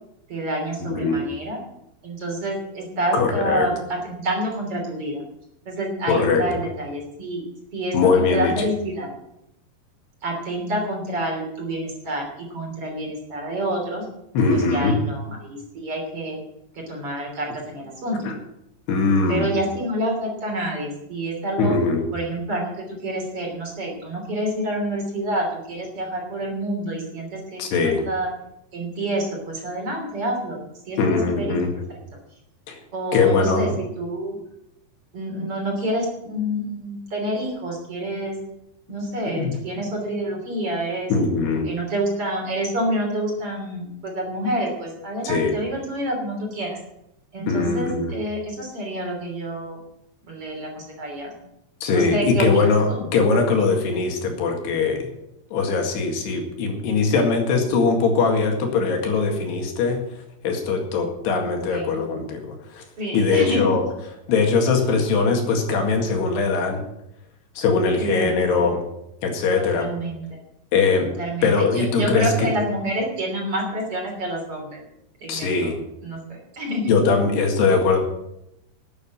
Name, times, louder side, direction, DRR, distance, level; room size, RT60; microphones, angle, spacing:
voice 1, 0.3-1.6 2.0-5.2 5.7-7.4 7.7-9.1 10.2-14.1 14.5-16.4 16.7-18.2 19.3-21.7 22.1-28.3 28.7-30.6 30.9-31.6 31.9-32.0 32.9-33.7 34.0-34.4 35.1-38.4 38.9-41.1 41.6-46.8 47.3-49.8 50.2-51.3 51.9-53.0 61.7-62.0 63.0-63.7 68.0-68.7 69.5-70.4 71.2-74.8 75.2-75.7 76.0-76.9, right 1 dB, 35° right, 1 dB, 3.6 m, -28 dB
voice 2, 0.9-1.2 3.1-3.7 6.1-6.4 7.9-8.7 14.3-15.0 18.2-18.3 18.9-19.5 21.6-22.1 27.6-28.0 31.0-31.7 32.7-32.8 33.1-33.8 39.3-39.5 41.1-41.7 45.2-45.6 47.5-48.1 51.8-52.9 53.1-55.1 55.5-60.0 60.4-62.8 63.1-63.8 64.3-66.8 67.6-68.8 69.2-69.9 70.7-71.1 71.4-72.5 75.3-75.8 76.9-78.0, left 4 dB, 75° left, 3 dB, 4.1 m, -21 dB
13.0 x 9.3 x 7.5 m, 0.84 s
omnidirectional pair, 4.9 m